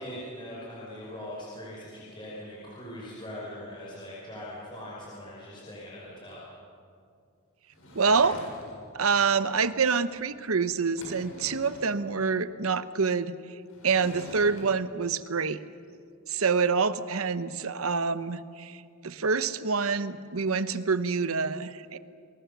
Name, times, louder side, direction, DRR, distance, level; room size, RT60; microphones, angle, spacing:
voice 1, 0.0-6.4, left 1 dB, 20° left, -6 dB, 5.5 m, -41 dB
Sliding door / Wood, 7.7-8.9 10.4-10.5 10.8-11.9 13.7-14.6, equal, 80° left, 7.2 m, -45 dB
voice 2, 7.9-8.4 8.9-13.3 13.8-15.6 16.3-22.0, right 5 dB, 80° right, 13 dB, 0.9 m, -26 dB
29.0 x 21.0 x 6.9 m, 2.4 s
head